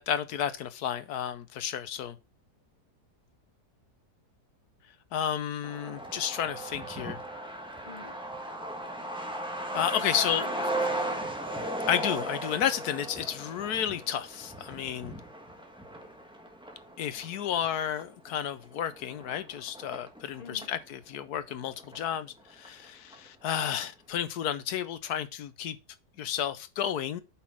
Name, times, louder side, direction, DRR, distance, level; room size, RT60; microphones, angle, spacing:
voice 1, 0.0-2.2 5.1-7.2 9.7-10.5 11.9-15.2 17.0-25.8 26.2-27.2, left 9 dB, 75° left, 1.3 m, -32 dB
Truck, 5.6-20.8 21.1-21.2 21.5-22.4 22.7-22.8 23.1-23.5, right 1 dB, 5° right, 1.2 m, -37 dB
voice 2, 7.8-8.2 9.7-11.3 20.4-20.7, left 5 dB, 35° left, 0.7 m, -45 dB
8.5 x 6.0 x 3.6 m
omnidirectional pair, 1.7 m